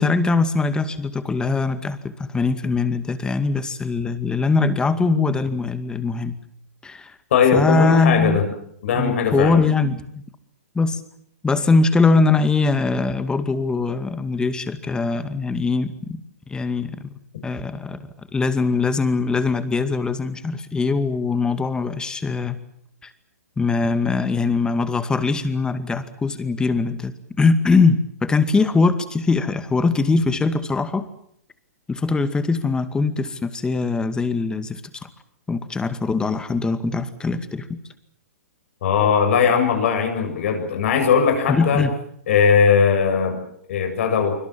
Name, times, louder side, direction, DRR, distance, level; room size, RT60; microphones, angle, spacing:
voice 1, 0.0-6.4 6.8-7.2 7.5-8.4 8.9-10.0 10.7-11.0 11.4-16.2 16.5-17.1 17.4-18.0 18.3-22.6 23.0-23.1 23.6-31.1 31.9-35.1 35.5-37.7 41.5-41.9, left 4 dB, 10° left, 11 dB, 2.2 m, -21 dB
voice 2, 7.3-8.4 8.8-9.6 38.8-41.8 42.3-43.4 43.7-44.4, left 6 dB, 55° left, 5 dB, 7.7 m, -19 dB
25.5 x 25.0 x 7.6 m, 0.70 s
hypercardioid pair, 120°, 8 cm